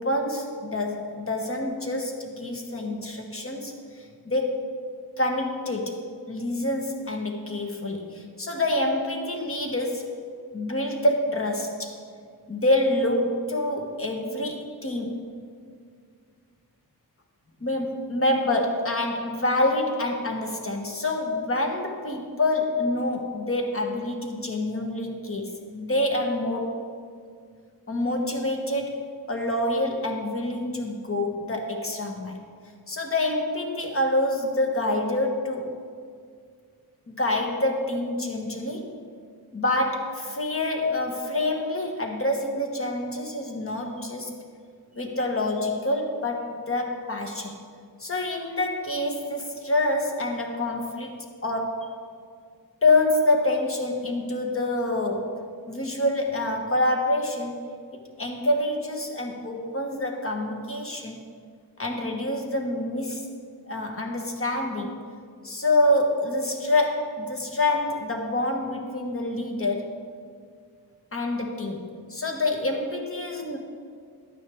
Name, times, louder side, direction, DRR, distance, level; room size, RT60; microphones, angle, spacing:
voice 1, 0.0-4.7 5.2-10.1 10.5-12.0 12.5-15.3 17.6-26.8 27.9-29.0 29.3-32.4 32.9-35.7 37.1-38.9 39.5-44.4 45.0-47.6 48.0-51.9 52.8-55.4 55.7-57.6 57.9-61.2 61.8-63.2 63.7-65.0 65.4-69.9 71.1-73.6, left 2 dB, 35° left, 2 dB, 1.2 m, -27 dB
11.5 x 9.2 x 3.5 m, 2.2 s
wide cardioid pair, 90°, 38 cm